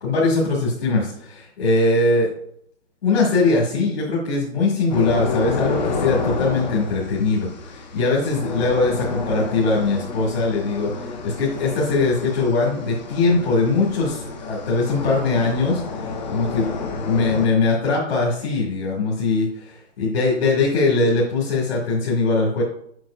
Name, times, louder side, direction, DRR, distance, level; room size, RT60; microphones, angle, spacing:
voice 1, 0.0-2.3 3.0-16.7 17.1-19.5 20.0-22.6, left 3 dB, 50° left, -5 dB, 2.1 m, -21 dB
sound 1, 4.9-17.5, left 4 dB, 35° left, 0.9 m, -30 dB
7.7 x 5.7 x 2.5 m, 0.68 s
hypercardioid pair, 175°, 37 cm